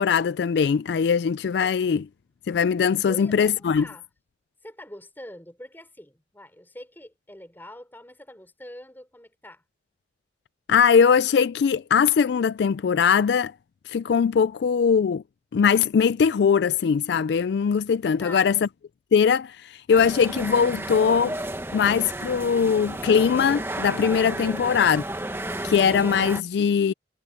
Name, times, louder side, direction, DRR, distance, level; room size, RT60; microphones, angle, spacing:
voice 1, 0.0-2.0 2.5-3.9 10.7-13.5 13.9-15.2 15.5-18.7 19.1-21.3 21.7-25.0 25.6-26.9, left 6 dB, 65° left, 0.3 m, -21 dB
voice 2, 3.1-4.1 4.6-9.6 18.2-18.6 24.5-24.9, left 1 dB, 10° left, 4.7 m, -44 dB
sound 1, 19.9-26.4, right 1 dB, 15° right, 1.3 m, -32 dB
head